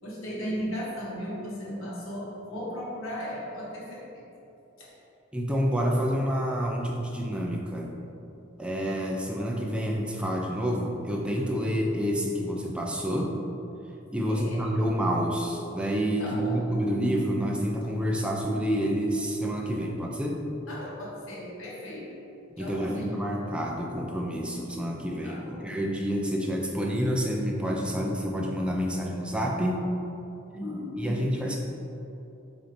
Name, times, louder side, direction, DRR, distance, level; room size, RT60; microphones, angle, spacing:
voice 1, 0.0-4.2 4.8-4.9 14.2-14.9 16.2-16.6 20.7-22.2 22.6-23.4 25.2-25.7 30.5-31.6, equal, 90° left, -5 dB, 1.5 m, -36 dB
voice 2, 5.3-7.9 8.6-13.3 14.1-20.4 22.6-29.8 31.0-31.6, equal, 5° right, -1 dB, 0.5 m, -28 dB
7.3 x 2.8 x 5.1 m, 2.9 s
head